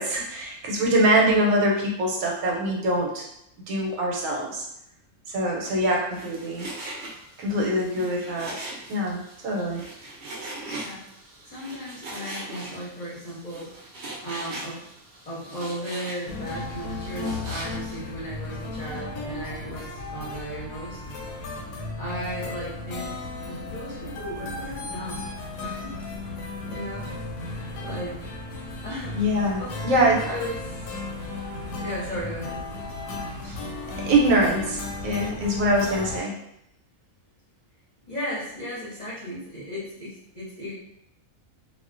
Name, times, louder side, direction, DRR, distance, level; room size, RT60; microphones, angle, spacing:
voice 1, 0.0-3.2 3.7-4.6 5.3-6.7 7.4-8.5 8.9-9.8 29.1-30.2 33.4-33.6 34.1-36.3, right 1 dB, 80° right, -1 dB, 1.0 m, -23 dB
Frying (food), 6.1-18.0, right 2 dB, 55° right, 0.7 m, -40 dB
voice 2, 7.9-8.2 10.7-11.1 11.4-13.7 14.2-14.9 15.3-21.0 22.0-23.2 23.4-25.3 25.6-26.3 26.6-27.1 27.8-28.2 28.8-31.0 31.7-32.6 38.1-40.7, equal, 40° left, -9 dB, 0.7 m, -36 dB
sound 1, 16.3-36.2, left 2 dB, 90° left, 1.1 m, -35 dB
2.4 x 2.1 x 2.4 m, 0.78 s
omnidirectional pair, 1.4 m